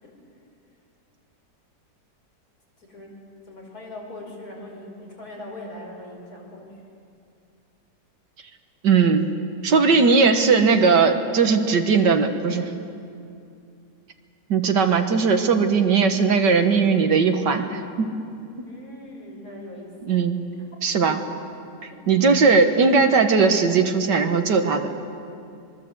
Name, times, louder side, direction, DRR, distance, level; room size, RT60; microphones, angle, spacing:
voice 1, 2.8-6.8 18.7-20.2 21.9-22.3, left 1 dB, 60° left, -2 dB, 5.8 m, -41 dB
voice 2, 8.8-9.3 9.6-12.7 14.5-18.1 20.1-20.5 20.8-21.2 21.8-24.9, right 5 dB, 75° right, 6 dB, 2.1 m, -19 dB
25.5 x 22.5 x 8.0 m, 2.5 s
omnidirectional pair, 1.9 m